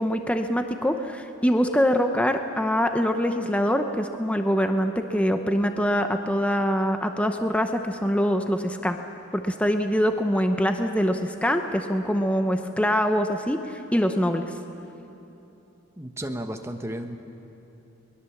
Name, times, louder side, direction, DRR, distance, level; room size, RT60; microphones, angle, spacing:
voice 1, 0.0-9.0 9.3-14.5, equal, 5° left, 6 dB, 0.7 m, -24 dB
voice 2, 16.0-17.2, right 1 dB, 15° right, 5 dB, 1.1 m, -33 dB
23.0 x 20.5 x 7.2 m, 2.9 s
head